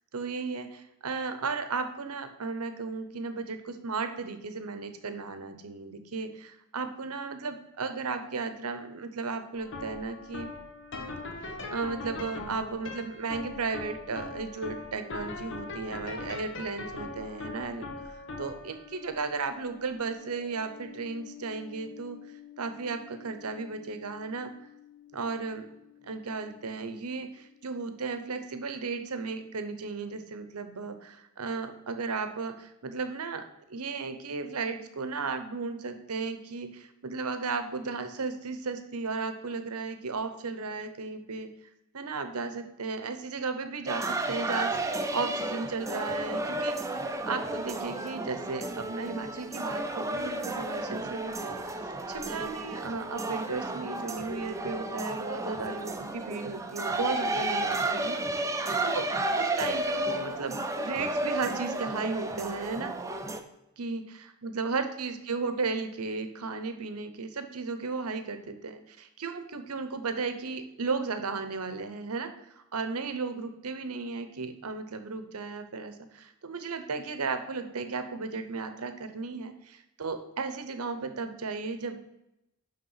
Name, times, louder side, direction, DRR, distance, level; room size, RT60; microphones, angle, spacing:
voice 1, 0.1-10.5 11.4-17.9 18.4-22.2 22.6-24.5 25.1-25.6 26.0-41.5 41.9-46.9 47.2-58.2 58.8-59.1 59.4-62.9 63.8-72.3 72.7-82.0, right 4 dB, 75° right, 9 dB, 0.9 m, -35 dB
sound 1, 9.6-26.8, left 3 dB, 55° left, 1.2 m, -42 dB
sound 2, 43.9-63.4, right 2 dB, 15° right, 0.6 m, -32 dB
11.0 x 3.7 x 5.7 m, 0.86 s
head